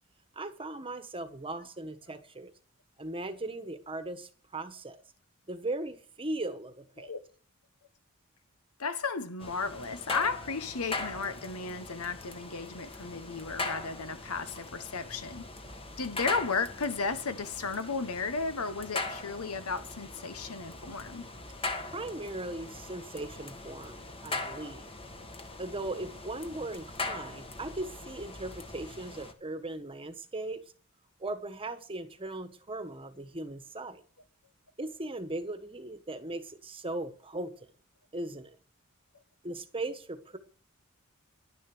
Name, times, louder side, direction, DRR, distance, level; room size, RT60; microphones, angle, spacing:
voice 1, 0.3-2.5 3.0-5.0 5.5-7.1 21.9-24.9 25.6-30.6 31.2-34.0 34.8-37.5 38.1-38.6 39.4-40.4, right 2 dB, 25° right, 1.3 m, -38 dB
voice 2, 8.8-15.5 16.0-21.3, left 4 dB, 80° left, 1.3 m, -34 dB
sound 1, 9.4-29.3, left 3 dB, 25° left, 1.6 m, -40 dB
11.0 x 10.5 x 6.2 m
head